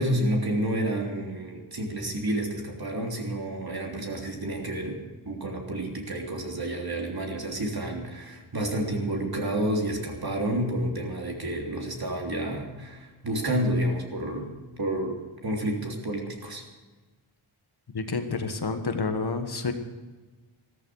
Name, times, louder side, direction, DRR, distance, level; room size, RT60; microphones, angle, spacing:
voice 1, 0.0-5.0 5.2-16.6, right 1 dB, 45° right, 1 dB, 3.4 m, -30 dB
voice 2, 17.9-19.7, left 4 dB, 50° left, 7 dB, 1.5 m, -29 dB
14.5 x 13.5 x 6.4 m, 1.2 s
wide cardioid pair, 100°, 49 cm